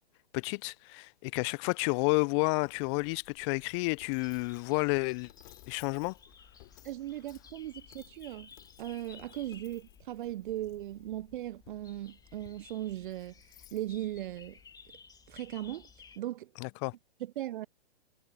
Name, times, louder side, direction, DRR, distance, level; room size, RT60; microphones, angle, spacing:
voice 1, 0.3-5.3 5.7-6.2 16.6-16.9, left 32 dB, 30° left, 0.6 m, -30 dB
Coin (dropping), 2.6-14.9, left 18 dB, 45° left, 3.0 m, -60 dB
sound 1, 4.2-16.2, left 6 dB, 10° left, 2.9 m, -57 dB
voice 2, 6.8-8.5 8.8-13.3 13.7-14.6 15.3-15.9 16.2-16.5 17.2-17.7, right 13 dB, 50° right, 0.7 m, -38 dB
hypercardioid pair, 125°, 32 cm